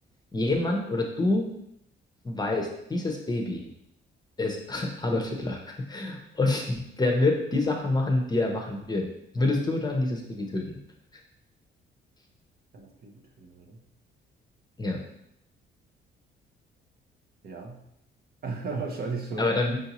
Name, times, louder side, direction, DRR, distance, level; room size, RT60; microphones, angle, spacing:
voice 1, 0.3-1.5 2.2-3.7 4.4-9.1 9.3-10.8 14.8-15.0 19.4-19.8, left 2 dB, 20° left, 2 dB, 0.7 m, -27 dB
voice 2, 12.7-13.8 17.4-17.8 18.4-19.6, right 4 dB, 50° right, 2 dB, 0.7 m, -35 dB
4.9 x 2.7 x 2.9 m, 0.77 s
cardioid pair, 90°, 20 cm